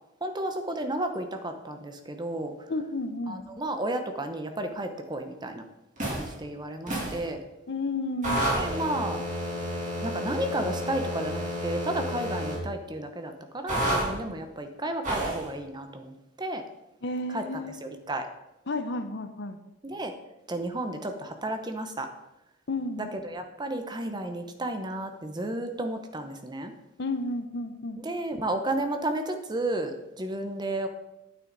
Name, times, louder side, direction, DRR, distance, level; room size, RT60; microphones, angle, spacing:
voice 1, 0.2-2.5 3.3-5.6 6.1-7.4 8.5-9.2 10.0-16.6 17.3-18.3 19.8-20.1 20.5-22.1 23.0-26.7 28.0-30.9, right 1 dB, 20° right, 6 dB, 0.8 m, -32 dB
voice 2, 2.7-3.4 7.7-8.4 17.0-17.9 18.7-19.6 22.7-23.1 27.0-28.0, left 2 dB, 60° left, 8 dB, 0.8 m, -32 dB
sound 1, 6.0-6.3 6.9-7.2 8.2-12.6 13.7-14.1 15.0-15.4, equal, 40° right, 3.0 m, -30 dB
9.3 x 8.8 x 4.0 m, 0.93 s
head